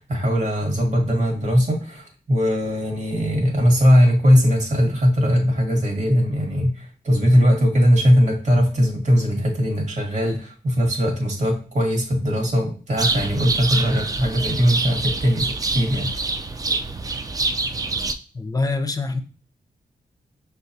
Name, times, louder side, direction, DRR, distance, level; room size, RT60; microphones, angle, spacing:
voice 1, 0.0-16.1, equal, 50° right, -1 dB, 1.5 m, -19 dB
sound 1, 13.0-18.1, right 3 dB, 25° right, 0.4 m, -26 dB
voice 2, 18.3-19.2, left 3 dB, 25° left, 9 dB, 0.5 m, -24 dB
6.2 x 2.3 x 2.7 m, 0.37 s
cardioid pair, 70°, 15 cm